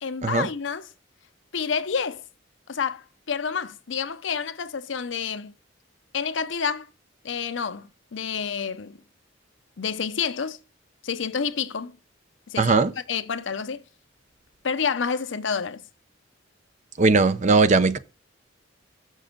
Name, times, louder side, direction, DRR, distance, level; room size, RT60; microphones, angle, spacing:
voice 1, 0.0-0.9 1.5-2.2 2.7-5.5 6.1-6.9 7.2-9.0 9.8-10.6 11.0-12.0 12.5-12.8 13.1-13.8 14.6-15.8, left 6 dB, 70° left, 0.6 m, -29 dB
voice 2, 12.6-12.9 17.0-18.0, right 3 dB, 40° right, 0.6 m, -19 dB
6.6 x 6.4 x 5.2 m
head